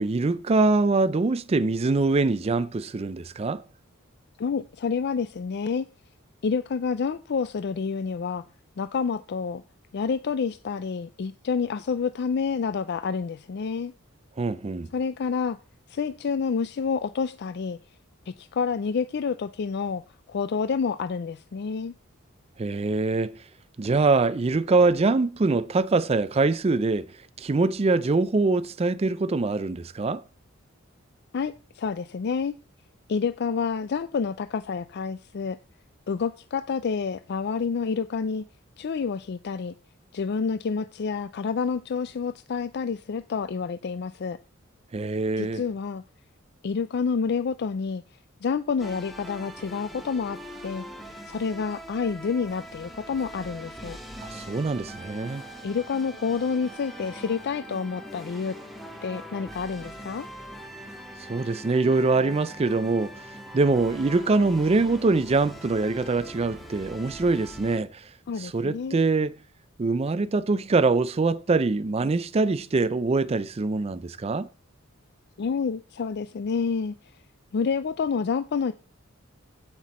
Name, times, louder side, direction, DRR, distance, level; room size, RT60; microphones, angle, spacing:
voice 1, 0.0-3.6 14.4-14.9 22.6-23.4 23.8-27.1 27.4-30.2 44.9-45.6 54.2-55.4 61.2-63.3 63.5-68.0 68.4-69.4 69.8-74.5, right 3 dB, 30° right, 0.4 m, -24 dB
voice 2, 4.4-5.9 6.4-8.4 8.8-9.6 9.9-13.9 14.9-15.6 15.9-17.8 18.3-20.0 20.3-21.9 31.3-32.5 33.1-35.6 36.1-38.4 38.8-39.7 40.1-44.4 45.4-46.0 46.6-48.0 48.4-50.8 51.3-54.0 55.6-58.6 59.0-60.3 68.3-69.0 75.4-76.9 77.5-78.7, left 5 dB, 55° left, 0.4 m, -28 dB
sound 1, 48.8-67.8, equal, ahead, 1.8 m, -42 dB
15.5 x 5.9 x 4.2 m
head